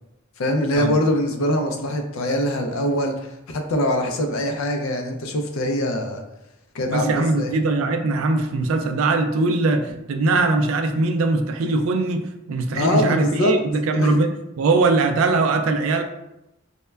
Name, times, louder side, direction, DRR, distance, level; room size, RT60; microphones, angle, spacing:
voice 1, 0.4-6.2 6.7-7.5 12.7-13.6 13.9-14.1, left 1 dB, 75° left, 4 dB, 0.4 m, -23 dB
voice 2, 6.9-16.0, right 3 dB, 80° right, 6 dB, 0.3 m, -21 dB
2.1 x 2.1 x 3.2 m, 0.90 s
head